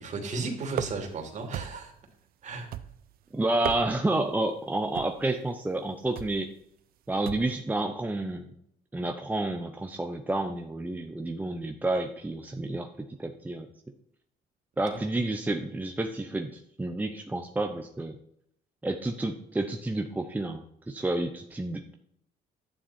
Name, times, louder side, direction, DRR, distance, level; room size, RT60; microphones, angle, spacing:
voice 1, 0.0-1.9 2.4-2.7, right 3 dB, 45° right, 3 dB, 2.9 m, -34 dB
sound 1, 0.7-1.2 1.5-2.0 2.7-3.2 3.5-4.2 4.9-5.3 6.2-6.4 7.3-7.6, right 11 dB, 60° right, 0.6 m, -36 dB
voice 2, 3.3-6.5 7.1-8.5 8.9-13.7 14.8-18.2 18.8-21.9, right 2 dB, 10° right, 5 dB, 0.8 m, -30 dB
11.5 x 9.7 x 4.4 m, 0.72 s
cardioid pair, 110°, 17 cm